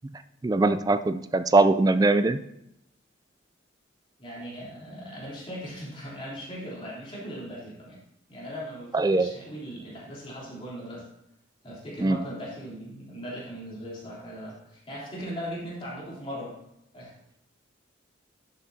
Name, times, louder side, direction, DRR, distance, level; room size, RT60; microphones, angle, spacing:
voice 1, 0.4-2.4 8.9-9.3 12.0-12.2, right 2 dB, 20° right, 12 dB, 0.3 m, -21 dB
voice 2, 4.2-8.0 8.3-11.1 11.6-16.6 16.9-17.1, equal, 30° left, -6 dB, 3.4 m, -39 dB
11.0 x 8.0 x 2.8 m, 0.81 s
head